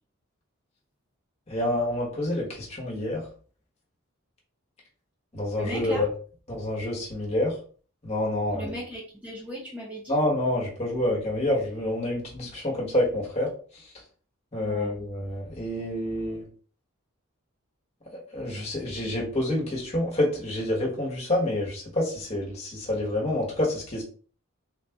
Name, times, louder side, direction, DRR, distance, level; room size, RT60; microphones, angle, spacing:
voice 1, 1.5-3.2 5.3-6.1 6.5-7.5 8.0-8.8 10.1-13.5 14.5-16.4 18.3-24.0, left 1 dB, 30° left, -3 dB, 1.3 m, -27 dB
voice 2, 5.6-6.1 8.5-10.2 14.6-14.9, equal, 5° right, -4 dB, 0.6 m, -37 dB
3.8 x 2.5 x 3.4 m, 0.42 s
head